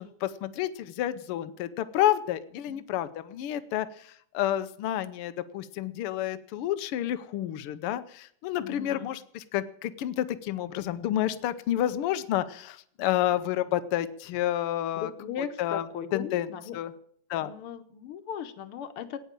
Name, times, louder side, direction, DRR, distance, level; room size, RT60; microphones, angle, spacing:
voice 1, 0.0-15.1 15.6-15.8 16.1-16.5 16.7-16.9 17.3-17.5, left 12 dB, 85° left, 13 dB, 1.2 m, -30 dB
voice 2, 8.6-9.1 14.9-16.8 17.4-19.2, left 8 dB, 65° left, 10 dB, 1.5 m, -37 dB
16.5 x 9.5 x 8.9 m, 0.66 s
omnidirectional pair, 3.4 m